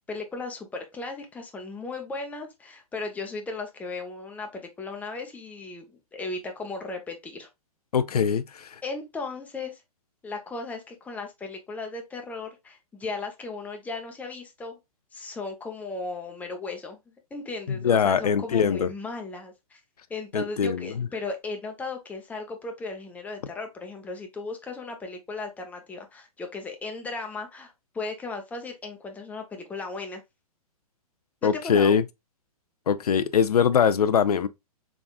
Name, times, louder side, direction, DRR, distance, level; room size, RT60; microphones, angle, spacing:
voice 1, 0.1-7.5 8.8-9.8 10.2-14.7 15.1-17.0 17.3-19.8 20.1-30.2 31.4-32.0, left 3 dB, 10° left, 0.7 m, -36 dB
voice 2, 7.9-8.8 17.7-18.9 20.3-21.1 31.4-32.0 32.9-34.5, left 7 dB, 80° left, 0.4 m, -22 dB
3.9 x 3.5 x 2.3 m
hypercardioid pair, 125°, 19 cm